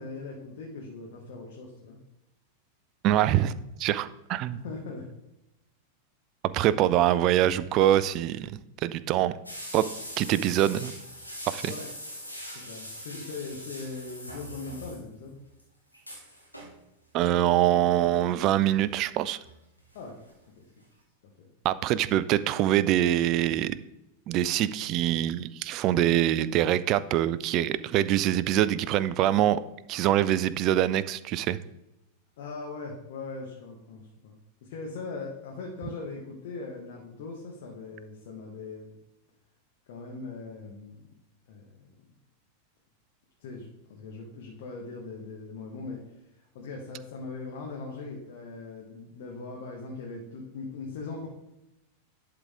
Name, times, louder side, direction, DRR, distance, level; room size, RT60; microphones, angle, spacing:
voice 1, 0.0-2.0 4.5-5.0 11.7-11.9 12.5-15.4 19.9-20.1 20.6-20.7 21.4-21.5 32.4-34.4 34.7-39.0 39.9-41.0 41.5-41.9 43.4-46.0 46.5-51.3, left 3 dB, 55° left, -1 dB, 1.2 m, -40 dB
voice 2, 3.0-3.5 3.8-4.6 6.4-9.3 9.7-9.9 10.2-10.9 11.5-11.7 17.1-19.4 21.6-23.8 24.3-29.6 29.9-31.6, right 12 dB, 40° right, 16 dB, 0.3 m, -24 dB
sound 1, 9.5-15.3 15.6-15.7 15.9-16.8 17.9-18.1 18.7-20.0 20.3-20.4 20.8-20.9, equal, 90° left, 1.2 m, -42 dB
11.0 x 3.8 x 3.5 m, 0.92 s
figure-of-eight pair, 90°, 0 cm